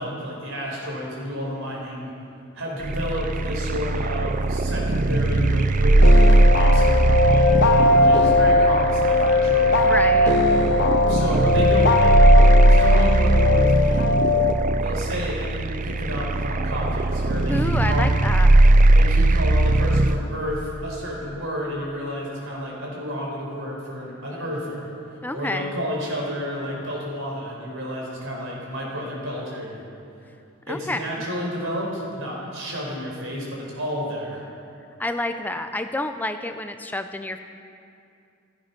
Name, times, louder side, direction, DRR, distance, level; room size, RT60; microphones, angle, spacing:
voice 1, 0.0-2.1 2.5-9.9 11.0-12.1 12.7-14.2 14.8-18.1 18.9-29.8 30.7-34.4, equal, 70° right, -3 dB, 4.7 m, -31 dB
sound 1, 2.8-20.2, right 2 dB, 40° right, 0.5 m, -19 dB
sound 2, 6.0-14.5, left 2 dB, 55° left, 0.9 m, -19 dB
voice 2, 9.8-10.3 17.5-18.5 25.2-25.7 30.7-31.0 35.0-37.4, left 1 dB, 10° left, 7 dB, 0.5 m, -28 dB
16.0 x 13.0 x 5.9 m, 2.5 s
head